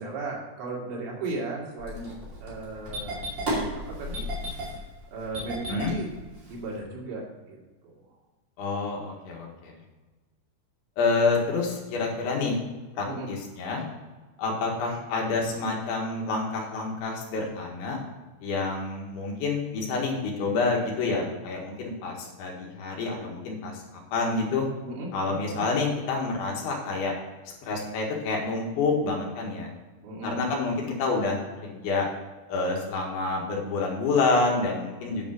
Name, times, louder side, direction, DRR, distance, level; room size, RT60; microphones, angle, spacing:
voice 1, 0.0-2.1 2.4-3.2 3.7-4.3 4.6-4.8 5.1-6.1 6.5-7.6 7.8-7.9 13.1-13.3 24.8-25.6 30.0-30.3, right 2 dB, 75° right, -3 dB, 4.6 m, -36 dB
Engine starting, 1.8-6.8, equal, 30° right, 2.2 m, -33 dB
voice 2, 8.6-9.8 11.0-12.6 12.9-13.8 14.4-18.0 18.4-23.8 24.1-24.7 25.1-27.1 27.6-29.7 30.2-32.1 32.5-35.3, left 3 dB, 70° left, -1 dB, 3.8 m, -28 dB
9.6 x 5.2 x 6.4 m, 1.3 s
omnidirectional pair, 5.8 m